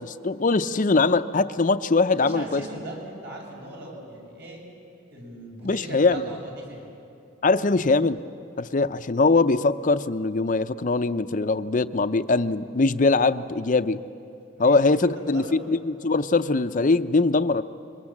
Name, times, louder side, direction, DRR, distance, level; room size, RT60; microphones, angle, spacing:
voice 1, 0.0-2.6 5.6-6.2 7.4-8.2 8.6-14.0 14.6-17.6, left 3 dB, 40° left, 12 dB, 0.6 m, -22 dB
voice 2, 2.2-4.6 5.1-6.9 14.5-14.9 15.1-15.7, right 1 dB, 55° right, -1 dB, 7.0 m, -39 dB
26.0 x 23.0 x 7.3 m, 2.6 s
head